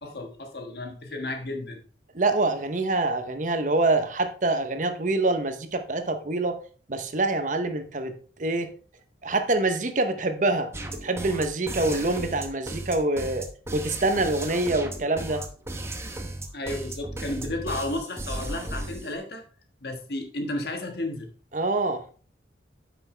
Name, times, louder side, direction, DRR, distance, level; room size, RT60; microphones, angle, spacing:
voice 1, 0.0-1.8 16.5-19.4 19.8-21.3, left 1 dB, 60° left, 1.5 m, -33 dB
voice 2, 2.1-6.6 6.9-8.1 8.4-8.7 9.2-10.7 11.0-13.4 13.7-15.4 21.5-22.0, right 2 dB, 45° right, 0.8 m, -25 dB
sound 1, 10.7-19.2, right 1 dB, 15° right, 0.8 m, -35 dB
9.1 x 6.2 x 3.3 m
head